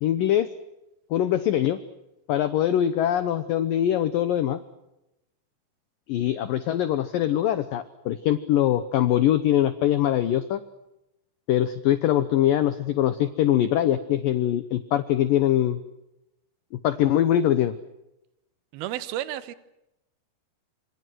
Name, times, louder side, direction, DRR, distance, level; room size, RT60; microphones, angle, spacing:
voice 1, 0.0-0.5 1.1-1.8 2.3-4.6 6.1-10.6 11.5-15.8 16.8-17.7, left 11 dB, 70° left, 12 dB, 2.2 m, -23 dB
voice 2, 18.7-19.5, right 12 dB, 70° right, 14 dB, 2.8 m, -32 dB
28.0 x 27.0 x 6.3 m, 0.89 s
omnidirectional pair, 5.0 m